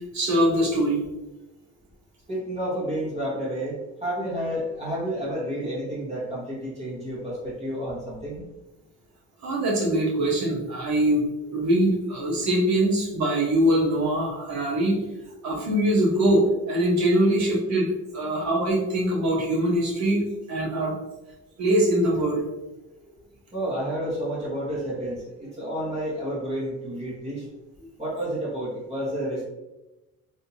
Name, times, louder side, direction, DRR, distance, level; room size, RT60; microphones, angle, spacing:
voice 1, 0.1-1.0 9.4-11.3 11.5-15.0 15.4-20.9 21.6-22.4, right 1 dB, 65° right, -3 dB, 1.3 m, -23 dB
voice 2, 2.3-8.4 23.5-27.4 28.0-29.5, equal, 20° right, -8 dB, 1.3 m, -30 dB
3.5 x 2.7 x 2.8 m, 1.0 s
cardioid pair, 90°, 30 cm